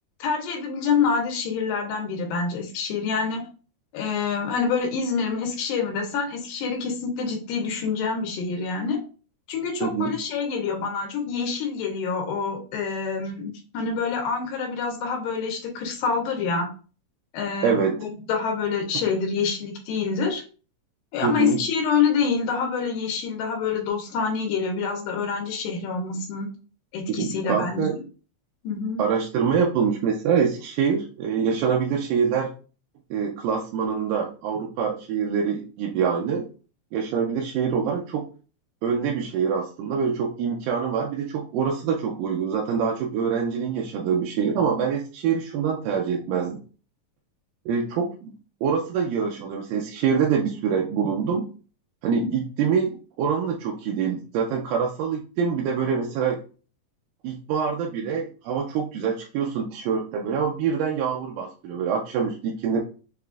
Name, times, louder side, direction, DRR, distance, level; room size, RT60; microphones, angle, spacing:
voice 1, 0.2-3.4 3.9-9.0 9.5-16.7 17.3-20.4 21.1-26.5 26.9-27.8 28.6-29.0, left 5 dB, 85° left, 1 dB, 2.3 m, -26 dB
voice 2, 9.8-10.2 17.6-18.0 21.2-21.6 27.1-28.0 29.0-32.5 33.1-36.5 36.9-38.3 38.8-46.6 47.7-48.3 48.6-51.4 52.0-56.4 57.2-62.8, right 6 dB, 85° right, 1 dB, 2.1 m, -25 dB
6.6 x 2.4 x 2.3 m, 0.37 s
omnidirectional pair, 3.9 m